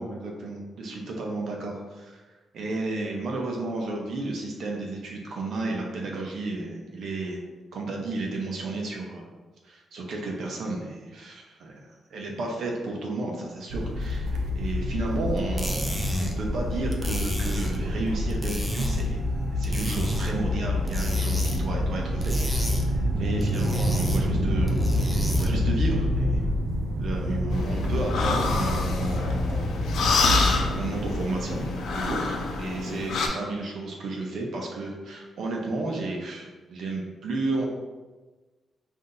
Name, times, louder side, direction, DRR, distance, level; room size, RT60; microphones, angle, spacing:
voice 1, 0.0-2.2 2.5-7.4 7.7-9.3 9.6-11.8 12.1-19.2 19.5-24.8 25.3-26.4 27.0-30.1 30.7-31.6 31.9-37.7, right 2 dB, 65° right, 0 dB, 0.8 m, -32 dB
sound 1, 13.7-32.7, left 1 dB, 90° right, 0.5 m, -27 dB
sound 2, 15.4-25.7, equal, 10° right, 0.5 m, -35 dB
sound 3, 27.5-33.3, left 3 dB, 75° left, 0.6 m, -27 dB
5.6 x 2.7 x 2.6 m, 1.3 s
cardioid pair, 145°, 0 cm